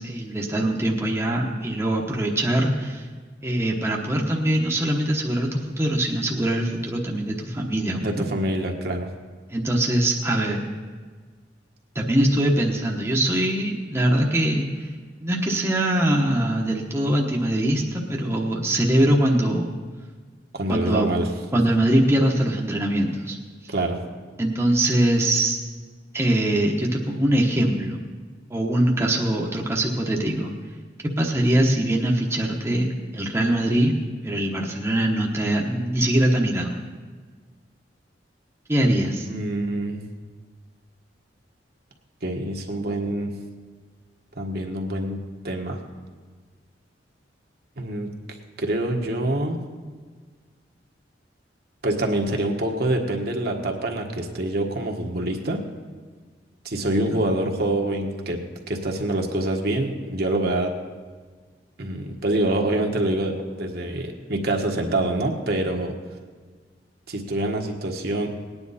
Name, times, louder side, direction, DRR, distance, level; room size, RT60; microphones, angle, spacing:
voice 1, 0.0-3.0 3.4-8.3 9.5-10.6 11.9-14.7 15.2-19.7 20.7-21.1 21.5-23.4 24.4-25.6 26.1-28.0 28.5-30.5 31.2-33.9 34.2-36.8 38.7-39.3 57.1-57.2, right 1 dB, 15° right, -1 dB, 1.0 m, -22 dB
voice 2, 8.0-9.1 20.5-21.3 23.7-24.0 39.2-40.0 42.2-43.3 44.4-45.8 47.8-48.1 48.6-49.6 51.8-55.6 56.6-58.4 58.7-60.7 61.8-65.9 67.1-68.3, right 1 dB, 60° right, 2 dB, 1.5 m, -25 dB
19.0 x 9.7 x 4.2 m, 1.5 s
head